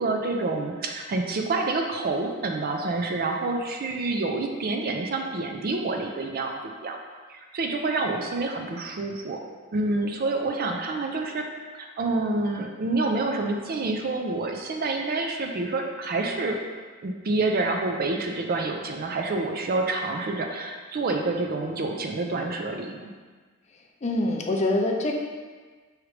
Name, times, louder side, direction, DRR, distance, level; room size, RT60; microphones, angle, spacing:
voice 1, 0.0-6.5 6.8-7.0 7.3-9.4 9.7-11.4 11.7-16.6 17.0-23.1, right 3 dB, 50° right, 2 dB, 0.4 m, -28 dB
voice 2, 24.0-25.1, left 2 dB, 35° left, 1 dB, 0.5 m, -24 dB
4.9 x 3.2 x 3.2 m, 1.4 s
head